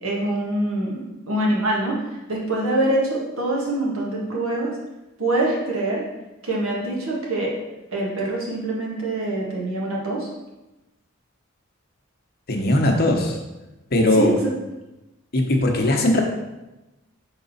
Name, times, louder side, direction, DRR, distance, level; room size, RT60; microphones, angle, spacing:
voice 1, 0.0-2.0 2.3-4.7 5.2-6.0 6.4-7.5 7.9-10.3 14.2-14.3, right 1 dB, 85° right, -3 dB, 1.7 m, -24 dB
voice 2, 12.5-13.4 13.9-14.4 15.3-16.2, left 1 dB, 50° left, 2 dB, 0.9 m, -19 dB
6.1 x 3.9 x 4.1 m, 1.0 s
head